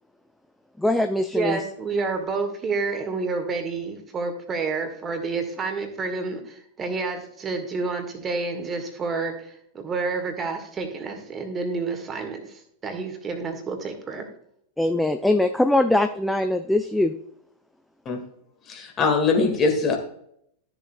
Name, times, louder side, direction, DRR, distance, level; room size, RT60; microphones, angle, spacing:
voice 1, 0.8-1.6 14.8-17.1, left 1 dB, 5° left, 8 dB, 0.4 m, -22 dB
voice 2, 1.3-12.5 12.8-14.3, right 4 dB, 20° right, 6 dB, 1.6 m, -29 dB
voice 3, 18.7-20.0, left 4 dB, 25° left, 2 dB, 1.9 m, -22 dB
13.0 x 6.9 x 2.3 m, 0.70 s
figure-of-eight pair, 90°, 0 cm